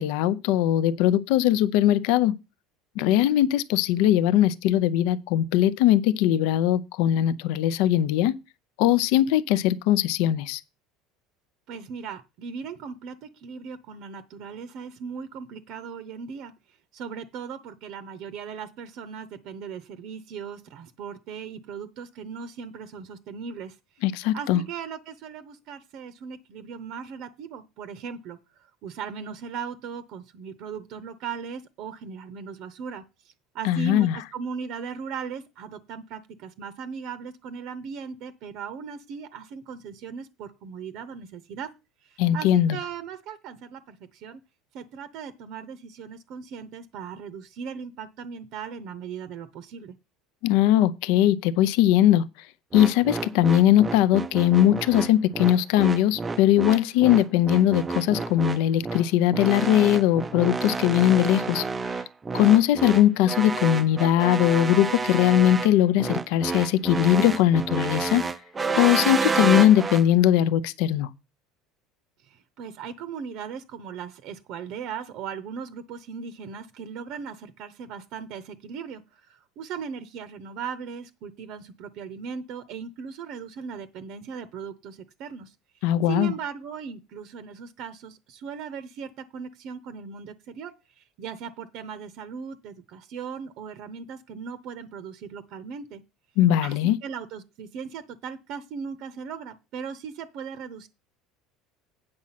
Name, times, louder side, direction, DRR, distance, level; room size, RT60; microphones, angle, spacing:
voice 1, 0.0-2.3 3.0-8.4 8.8-10.6 24.0-24.6 33.6-34.2 42.2-42.8 50.4-52.2 52.7-61.6 62.3-68.2 68.7-71.1 85.8-86.3 96.4-97.0, left 12 dB, 65° left, 0.6 m, -20 dB
voice 2, 11.7-16.5 16.9-23.8 24.3-28.4 28.8-41.7 42.1-44.4 44.7-49.9 72.2-79.0 79.6-85.5 86.1-90.7 91.2-96.0 96.6-100.9, right 6 dB, 50° right, 0.7 m, -38 dB
sound 1, 52.7-70.0, right 4 dB, 15° right, 0.4 m, -29 dB
8.8 x 6.2 x 5.7 m
cardioid pair, 160°, 0 cm